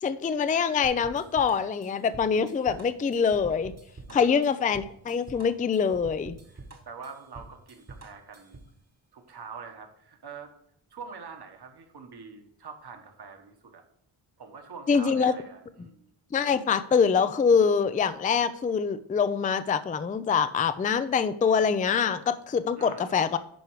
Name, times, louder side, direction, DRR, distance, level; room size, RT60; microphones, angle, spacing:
voice 1, 0.0-3.7 4.1-6.4 14.9-15.3 16.3-23.4, left 6 dB, 20° left, 13 dB, 0.3 m, -24 dB
sound 1, 0.8-8.7, right 3 dB, 30° right, 1.3 m, -47 dB
voice 2, 4.1-4.5 6.5-8.6 9.1-10.5 10.9-13.8 14.4-16.1 22.8-23.2, right 5 dB, 50° right, 4 dB, 1.3 m, -45 dB
10.5 x 4.5 x 4.7 m, 0.72 s
wide cardioid pair, 100°, 50 cm